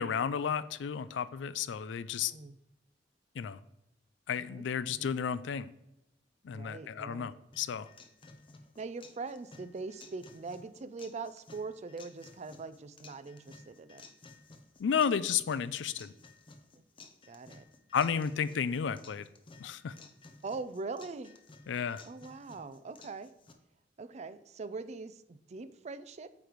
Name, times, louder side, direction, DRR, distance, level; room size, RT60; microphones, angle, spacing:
voice 1, 0.0-2.3 3.4-3.6 4.3-5.7 6.4-7.9 14.8-16.1 17.9-19.3 19.6-19.9 21.7-22.0, left 7 dB, 80° left, 16 dB, 0.4 m, -32 dB
voice 2, 4.4-5.1 6.5-7.3 8.8-14.0 17.3-17.6 20.4-21.4 22.0-23.3 24.0-26.3, right 4 dB, 40° right, 12 dB, 0.4 m, -42 dB
sound 1, 7.5-23.5, left 3 dB, 30° left, 0.6 m, -56 dB
8.5 x 3.2 x 5.0 m, 0.90 s
head